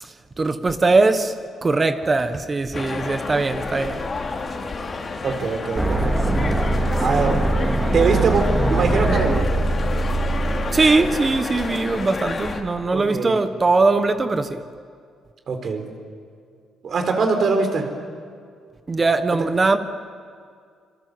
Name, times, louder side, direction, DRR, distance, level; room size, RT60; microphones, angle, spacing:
voice 1, 0.0-1.4 1.6-4.0 10.7-14.6 18.9-19.8, right 3 dB, 30° right, 1.3 m, -20 dB
sound 1, 2.7-12.6, left 4 dB, 40° left, 3.0 m, -30 dB
voice 2, 5.2-6.3 7.0-7.5 7.9-9.5 12.9-13.3 15.5-15.9 16.8-17.9, right 4 dB, 55° right, 4.2 m, -22 dB
sound 2, 5.8-11.7, right 2 dB, 5° right, 3.9 m, -22 dB
25.5 x 25.0 x 8.1 m
cardioid pair, 90°, 0 cm